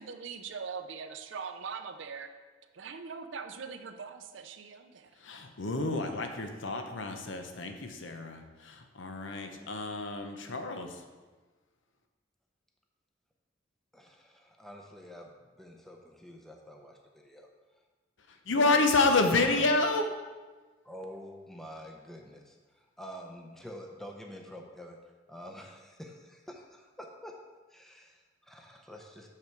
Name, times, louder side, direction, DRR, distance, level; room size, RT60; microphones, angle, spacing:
voice 1, 0.0-2.3 2.7-5.1, right 5 dB, 80° right, 8 dB, 0.6 m, -41 dB
voice 2, 5.2-11.0 18.5-20.1, left 3 dB, 80° left, 5 dB, 0.8 m, -29 dB
voice 3, 13.9-17.5 18.5-18.8 19.2-19.8 20.8-25.0 25.3-27.3 27.7-29.3, equal, ahead, 1 dB, 0.6 m, -47 dB
6.8 x 5.8 x 4.5 m, 1.3 s
head